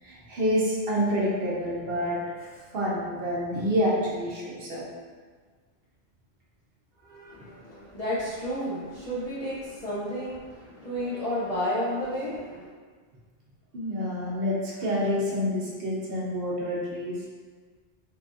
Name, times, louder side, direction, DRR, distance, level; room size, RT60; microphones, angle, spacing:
voice 1, 0.0-4.8 7.0-7.4 13.7-17.3, equal, 60° right, -6 dB, 0.8 m, -28 dB
voice 2, 7.3-12.7, equal, 50° left, -9 dB, 0.4 m, -31 dB
3.2 x 2.4 x 2.4 m, 1.5 s
omnidirectional pair, 1.2 m